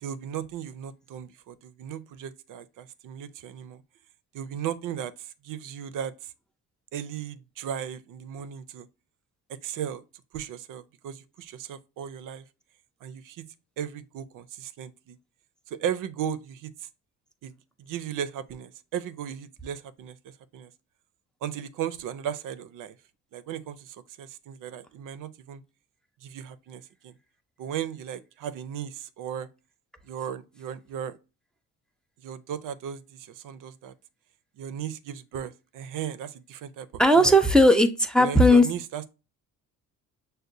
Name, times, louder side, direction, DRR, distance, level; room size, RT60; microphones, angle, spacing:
voice 1, 0.0-3.8 4.3-6.3 6.9-8.9 9.5-10.0 10.3-12.4 13.0-13.4 13.8-15.2 15.7-16.9 17.4-17.5 17.8-20.7 21.4-23.0 23.3-25.6 26.2-27.1 27.6-29.5 30.0-31.2 32.2-33.9 34.6-36.9 37.1-37.4 38.2-39.1, right 9 dB, 65° right, 0.5 m, -36 dB
voice 2, 37.0-38.6, equal, ahead, 0.4 m, -17 dB
6.5 x 2.2 x 2.5 m
cardioid pair, 110°, 34 cm